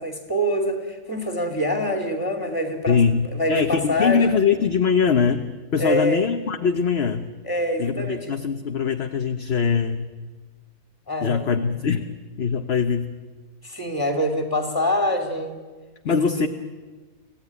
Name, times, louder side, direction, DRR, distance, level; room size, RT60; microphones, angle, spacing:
voice 1, 0.0-3.0 3.3-4.4 5.8-6.2 7.4-8.3 11.1-11.4 13.6-15.5 16.1-16.5, equal, 15° left, 5 dB, 2.9 m, -25 dB
voice 2, 2.9-5.5 5.7-7.3 7.8-10.1 11.2-12.1 12.4-13.1 16.0-16.5, left 6 dB, 50° left, 7 dB, 1.0 m, -22 dB
25.0 x 16.0 x 9.7 m, 1.3 s
omnidirectional pair, 1.7 m